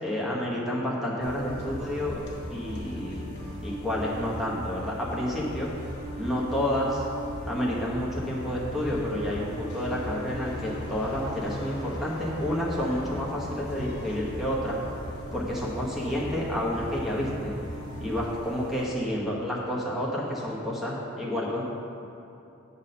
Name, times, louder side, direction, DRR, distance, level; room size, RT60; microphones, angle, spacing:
voice 1, 0.0-2.2 2.5-3.3 3.6-5.7 6.2-7.1 7.5-14.8 15.3-17.5 18.0-21.6, equal, ahead, -6 dB, 1.0 m, -30 dB
sound 1, 1.2-18.9, equal, 55° left, 1.0 m, -45 dB
sound 2, 1.3-18.3, equal, 35° left, 1.9 m, -39 dB
8.0 x 4.2 x 6.4 m, 2.8 s
head